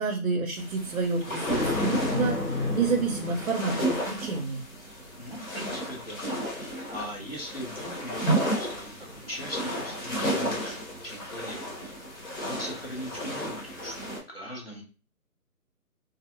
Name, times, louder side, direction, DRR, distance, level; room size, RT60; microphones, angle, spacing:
voice 1, 0.0-4.6, right 4 dB, 60° right, 2 dB, 0.5 m, -29 dB
sound 1, 0.6-14.2, right 1 dB, 60° left, 1.2 m, -33 dB
Thunder, 1.5-4.0, left 2 dB, 85° left, 1.0 m, -30 dB
voice 2, 5.2-6.2 6.5-8.2 8.6-11.7 12.1-14.8, equal, 40° left, -1 dB, 0.6 m, -40 dB
2.4 x 2.0 x 2.6 m, 0.34 s
figure-of-eight pair, 170°, 46 cm